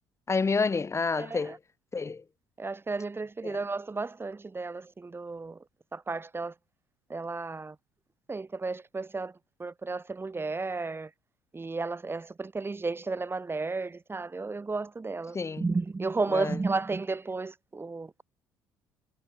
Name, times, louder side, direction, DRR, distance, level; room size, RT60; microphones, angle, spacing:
voice 1, 0.3-1.6 1.9-2.2 3.4-3.6 15.3-15.7 16.3-16.6, left 4 dB, 30° left, 3.3 m, -29 dB
voice 2, 1.2-1.6 2.6-5.6 5.9-6.5 7.1-7.7 8.3-9.3 9.6-11.1 11.5-18.2, right 3 dB, 25° right, 3.2 m, -33 dB
hypercardioid pair, 55°, 10 cm